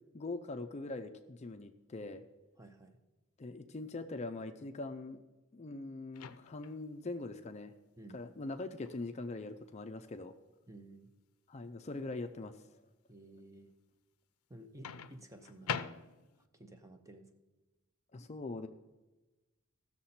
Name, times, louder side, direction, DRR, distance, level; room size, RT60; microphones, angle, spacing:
voice 1, 0.1-2.2 3.4-5.2 5.5-7.7 8.1-10.3 11.5-12.8 18.1-18.7, left 2 dB, 30° left, 7 dB, 0.4 m, -42 dB
voice 2, 2.6-3.0 8.0-8.2 10.7-11.1 13.1-13.7 14.5-15.9 16.5-17.3, right 1 dB, 15° right, 7 dB, 0.7 m, -54 dB
Microwave oven, 6.1-6.8 8.8-9.0 14.8-16.5, left 7 dB, 85° left, 0.5 m, -42 dB
16.0 x 6.6 x 4.2 m, 1.1 s
head